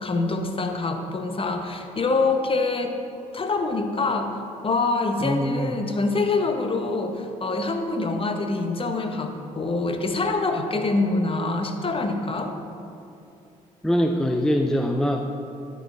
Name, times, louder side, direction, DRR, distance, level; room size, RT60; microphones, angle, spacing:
voice 1, 0.0-2.9 3.3-12.5, left 3 dB, 30° left, 5 dB, 0.9 m, -25 dB
voice 2, 5.2-5.7 13.8-15.3, equal, 5° left, 3 dB, 0.5 m, -23 dB
12.0 x 4.6 x 3.4 m, 2.7 s
hypercardioid pair, 50°, 18 cm